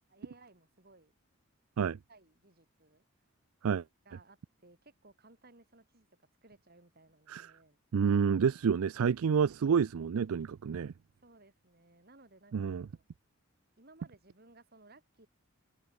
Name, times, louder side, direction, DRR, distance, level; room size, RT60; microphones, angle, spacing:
voice 1, 0.1-1.1 2.1-3.0 4.1-6.1 6.4-7.8 11.2-13.0 13.8-15.3, right 2 dB, 45° right, 3.7 m, -60 dB
voice 2, 7.9-10.9 12.5-12.9, right 6 dB, 80° right, 0.4 m, -28 dB
head